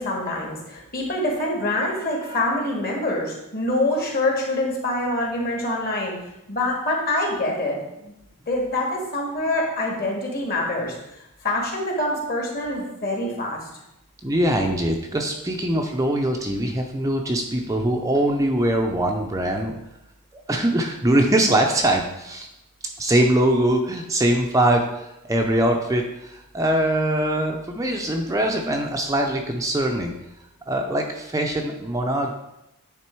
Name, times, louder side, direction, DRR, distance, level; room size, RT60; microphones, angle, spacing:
voice 1, 0.0-6.2 6.5-8.1 8.5-11.0 11.4-13.6, left 1 dB, 45° left, -1 dB, 1.8 m, -25 dB
voice 2, 14.2-19.8 20.5-22.5 23.0-30.1 30.7-32.3, right 1 dB, 15° right, 2 dB, 0.5 m, -22 dB
9.4 x 3.7 x 4.5 m, 0.88 s
head